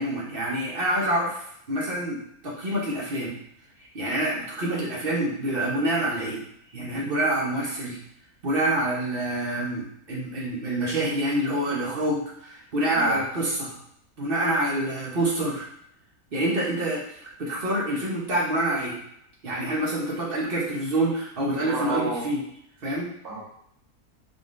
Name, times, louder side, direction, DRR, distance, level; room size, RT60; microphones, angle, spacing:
voice 1, 0.0-3.3 3.9-6.4 6.7-8.0 8.4-13.8 14.2-15.7 16.3-19.0 19.4-22.4 22.8-23.1, right 1 dB, 45° right, -4 dB, 0.9 m, -27 dB
voice 2, 21.6-22.3 23.2-23.4, right 2 dB, 75° right, -6 dB, 1.7 m, -30 dB
3.8 x 3.5 x 2.5 m, 0.72 s
omnidirectional pair, 1.5 m